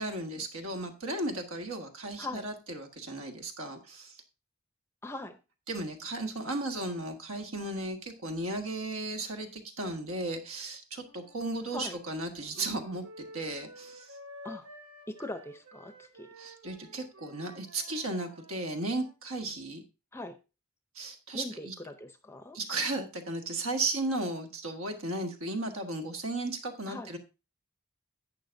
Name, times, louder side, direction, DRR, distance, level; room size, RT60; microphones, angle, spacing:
voice 1, 0.0-4.2 5.7-14.2 16.4-19.8 20.9-21.7 22.5-27.2, right 2 dB, 70° right, 5 dB, 1.6 m, -35 dB
voice 2, 5.0-5.4 11.7-12.0 14.4-14.7 15.1-16.3 20.1-20.4 21.3-22.6 26.9-27.1, left 2 dB, 10° left, 9 dB, 0.6 m, -41 dB
Wind instrument woodwind instrument, 11.0-19.1, equal, 85° right, 2.8 m, -52 dB
11.5 x 8.5 x 2.6 m, 0.29 s
head